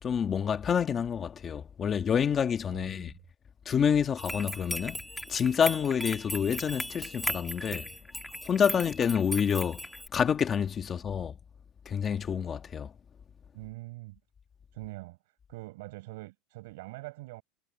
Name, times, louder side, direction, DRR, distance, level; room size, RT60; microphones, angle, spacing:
voice 1, 0.0-3.1 3.6-5.0 5.3-7.9 8.4-9.8 10.1-11.3 11.8-12.9, left 7 dB, 20° left, 1.5 m, -28 dB
voice 2, 2.7-3.2 8.7-8.8 13.5-14.2 14.7-15.2 15.5-17.4, right 21 dB, 75° right, 6.1 m, -43 dB
sound 1, 4.2-10.1, left 1 dB, ahead, 2.6 m, -37 dB
supercardioid pair, 160°, 0 cm